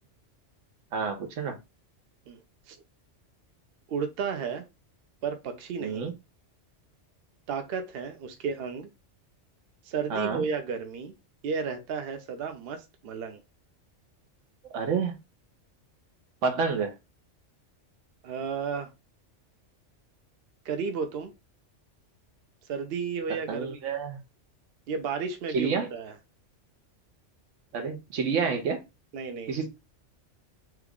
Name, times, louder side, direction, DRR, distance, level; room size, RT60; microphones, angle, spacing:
voice 1, 0.9-1.6 5.8-6.1 10.1-10.4 14.7-15.1 16.4-16.9 23.5-24.2 25.5-25.9 27.7-28.8 29.5-29.7, right 5 dB, 90° right, 1.1 m, -28 dB
voice 2, 3.9-4.6 5.2-6.1 7.5-8.9 9.9-11.1 11.4-13.4 18.2-18.9 20.6-21.3 22.7-23.8 24.9-26.2 29.1-29.7, right 6 dB, 60° right, 0.8 m, -33 dB
3.0 x 2.4 x 3.5 m
omnidirectional pair, 1.2 m